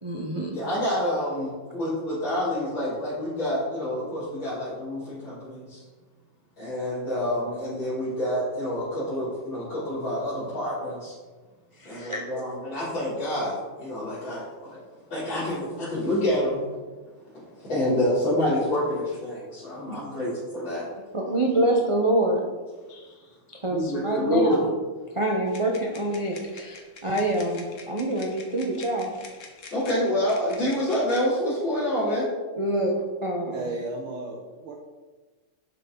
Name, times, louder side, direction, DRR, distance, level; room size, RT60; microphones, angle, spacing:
voice 1, 0.0-0.5 11.8-12.2 19.9-20.0 21.1-22.4 22.9-23.1 23.6-24.6 25.1-29.1 32.6-32.9 33.2-33.6, right 1 dB, 30° right, -1 dB, 0.5 m, -26 dB
voice 2, 0.5-5.8 6.6-11.1 11.8-14.8 15.1-16.6 17.5-20.8 23.7-24.7 29.7-32.3, left 1 dB, 65° left, -13 dB, 4.1 m, -27 dB
sound 1, 25.5-31.2, left 4 dB, 45° left, 1.3 m, -47 dB
voice 3, 33.5-34.8, right 2 dB, 85° right, -1 dB, 1.8 m, -34 dB
11.0 x 6.7 x 3.9 m, 1.3 s
omnidirectional pair, 2.2 m